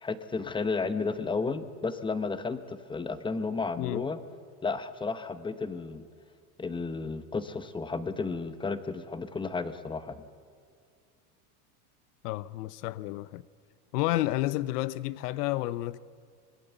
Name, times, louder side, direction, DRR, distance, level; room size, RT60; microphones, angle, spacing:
voice 1, 0.0-4.2 4.6-6.1 6.6-10.2, left 4 dB, 10° left, 0.8 m, -33 dB
voice 2, 12.2-13.4 13.9-16.0, left 16 dB, 80° left, 0.8 m, -30 dB
25.0 x 20.5 x 8.2 m
supercardioid pair, 145°, 46 cm